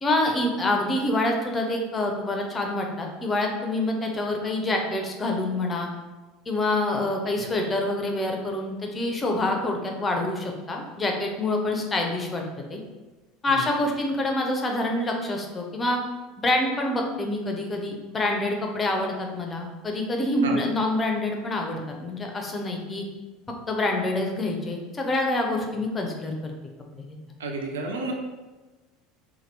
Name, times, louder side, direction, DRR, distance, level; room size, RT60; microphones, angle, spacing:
voice 1, 0.0-5.9 6.5-12.8 13.4-16.0 16.4-23.0 23.7-26.5 26.9-27.2, left 2 dB, 25° left, 2 dB, 0.6 m, -26 dB
voice 2, 27.4-28.1, right 3 dB, 75° right, 2 dB, 0.4 m, -31 dB
2.8 x 2.3 x 3.3 m, 1.2 s
figure-of-eight pair, 75°, 0 cm